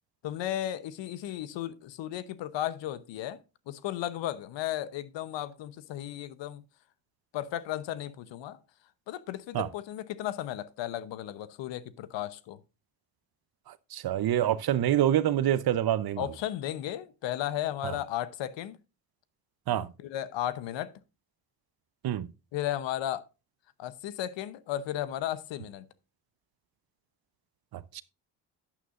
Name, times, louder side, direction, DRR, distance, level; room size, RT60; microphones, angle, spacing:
voice 1, 0.2-6.6 7.3-8.6 9.1-12.6 16.2-18.8 20.0-20.9 22.5-23.2 23.8-25.9, left 12 dB, 75° left, 0.9 m, -34 dB
voice 2, 13.9-16.3 17.8-17.9 19.7-19.9 22.0-22.3 27.7-28.0, right 11 dB, 55° right, 0.8 m, -26 dB
11.0 x 9.0 x 2.5 m
supercardioid pair, 75°, 44 cm